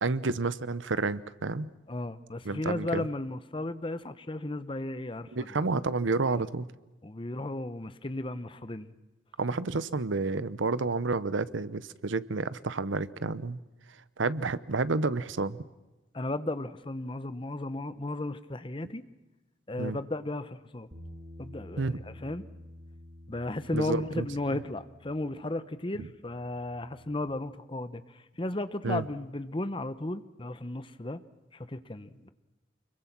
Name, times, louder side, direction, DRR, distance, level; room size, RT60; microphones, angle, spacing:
voice 1, 0.0-1.7 2.4-3.1 5.3-6.7 9.4-13.6 14.2-15.6 19.8-20.0 21.8-22.0 23.7-24.6 26.0-26.1 28.8-29.0, right 3 dB, 85° right, 16 dB, 0.8 m, -30 dB
voice 2, 1.9-5.5 6.3-6.4 7.0-8.9 16.1-19.0 19.7-20.9 21.4-22.4 23.3-31.2 31.5-32.3, left 2 dB, 25° left, 13 dB, 0.9 m, -35 dB
Bass guitar, 20.9-27.2, left 1 dB, 50° right, 3.1 m, -50 dB
25.0 x 22.5 x 6.0 m, 1.1 s
head